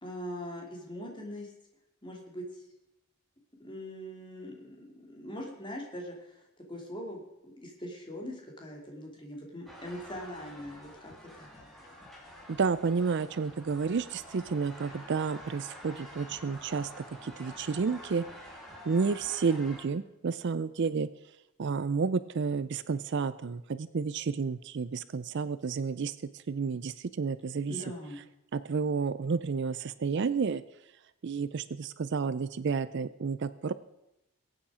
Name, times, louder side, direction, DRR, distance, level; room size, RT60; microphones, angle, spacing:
voice 1, 0.0-1.5 2.0-2.6 3.6-11.8 27.7-28.2, equal, 20° left, 0 dB, 2.7 m, -42 dB
sound 1, 9.7-19.8, equal, ahead, 2.9 m, -48 dB
voice 2, 12.5-16.9 17.2-18.2 18.9-21.1 21.6-27.8 28.5-30.6 31.2-33.7, right 5 dB, 50° right, 15 dB, 0.4 m, -31 dB
22.0 x 8.7 x 4.9 m, 0.89 s
head